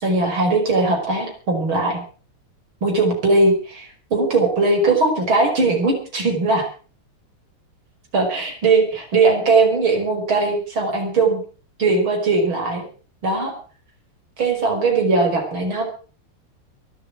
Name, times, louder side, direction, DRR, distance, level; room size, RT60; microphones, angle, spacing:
voice 1, 0.0-2.0 2.8-6.7 8.1-11.4 11.8-12.8 13.2-13.5 14.4-15.8, right 3 dB, 65° right, 3 dB, 5.9 m, -19 dB
23.0 x 8.2 x 6.2 m, 0.39 s
omnidirectional pair, 2.4 m